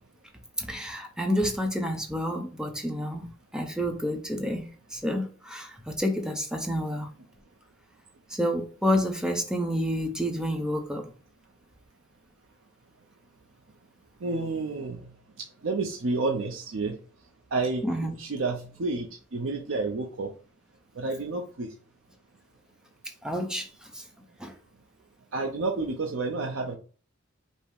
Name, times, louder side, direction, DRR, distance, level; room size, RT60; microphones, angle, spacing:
voice 1, 0.6-3.3 3.5-4.7 4.9-7.1 8.3-11.1 17.8-18.1 23.2-23.7 23.9-24.0 24.4-24.5, equal, 5° right, 0.7 m, -29 dB
voice 2, 14.2-15.0 15.6-17.0 17.5-20.3 21.0-21.7 25.3-26.8, right 3 dB, 70° right, 0.6 m, -30 dB
5.4 x 2.1 x 4.7 m
head